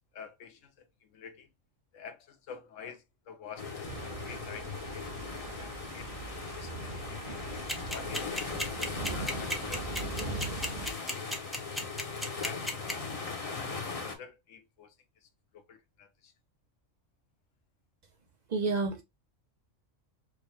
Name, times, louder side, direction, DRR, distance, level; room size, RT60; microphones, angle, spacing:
voice 1, 0.1-0.7 1.0-1.5 1.9-6.1 6.6-7.4 7.9-8.7 9.1-11.1 11.7-13.7 14.0-14.9 15.5-16.3, left 6 dB, 75° left, 1.1 m, -49 dB
sound 1, 3.6-14.2, left 4 dB, 35° left, 0.7 m, -39 dB
sound 2, 3.8-10.9, right 4 dB, 45° right, 0.8 m, -41 dB
sound 3, 7.7-12.9, equal, ahead, 0.4 m, -32 dB
voice 2, 18.5-19.0, right 3 dB, 70° right, 0.4 m, -29 dB
4.7 x 2.2 x 3.1 m
omnidirectional pair, 1.3 m